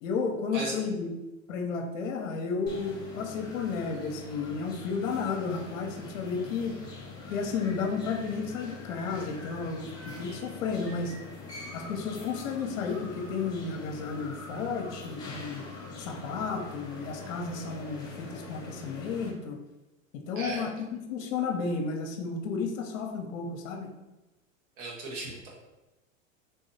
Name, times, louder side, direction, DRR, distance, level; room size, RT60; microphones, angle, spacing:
voice 1, 0.0-1.1 1.5-6.8 7.3-9.9 10.2-11.2 11.7-15.6 16.0-19.6 20.1-23.9, left 5 dB, 70° left, 3 dB, 0.6 m, -32 dB
sound 1, 2.7-19.3, left 3 dB, 10° left, 0.3 m, -43 dB
voice 2, 24.8-25.5, right 2 dB, 65° right, -3 dB, 1.3 m, -36 dB
3.4 x 2.7 x 2.7 m, 1.1 s
hypercardioid pair, 120°, 41 cm